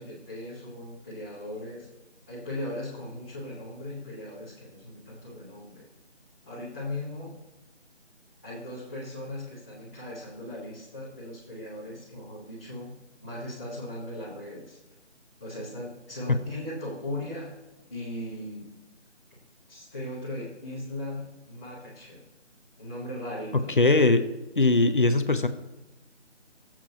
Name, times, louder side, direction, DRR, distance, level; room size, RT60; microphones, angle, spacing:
voice 1, 0.0-1.9 2.3-5.9 6.4-7.4 8.4-14.8 15.4-17.5 17.9-18.7 19.7-22.2 22.8-24.2, left 1 dB, 10° left, -11 dB, 1.1 m, -38 dB
voice 2, 23.5-24.2 24.6-25.5, left 2 dB, 45° left, 10 dB, 0.7 m, -21 dB
21.0 x 7.5 x 2.9 m, 1.0 s
figure-of-eight pair, 165°, 35 cm